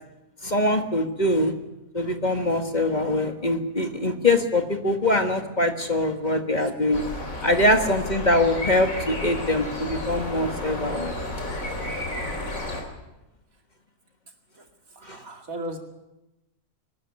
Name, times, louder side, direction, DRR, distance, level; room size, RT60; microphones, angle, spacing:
voice 1, 0.4-1.5 1.9-7.0 7.4-11.1 15.1-15.2, left 1 dB, 30° left, 5 dB, 1.6 m, -23 dB
sound 1, 6.9-12.8, left 1 dB, 70° left, 4.1 m, -32 dB
voice 2, 14.5-15.8, right 1 dB, 70° right, 3 dB, 2.8 m, -37 dB
22.5 x 13.5 x 9.5 m, 0.99 s
omnidirectional pair, 1.5 m